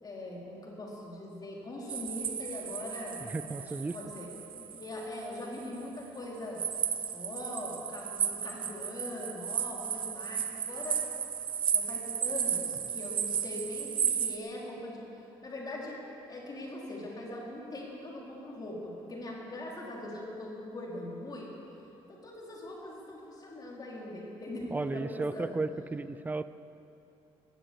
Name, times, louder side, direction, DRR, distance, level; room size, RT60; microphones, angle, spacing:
voice 1, 0.0-4.3 4.5-6.6 7.1-11.0 11.7-15.1 15.4-16.0 16.3-21.5 22.1-25.6, left 1 dB, 40° left, -3 dB, 4.0 m, -41 dB
sound 1, 1.9-5.6 6.6-14.4, right 8 dB, 50° right, 1.1 m, -34 dB
voice 2, 3.3-4.0 24.7-26.4, right 3 dB, 15° right, 14 dB, 0.5 m, -34 dB
17.0 x 9.7 x 8.2 m, 3.0 s
cardioid pair, 90°, 11 cm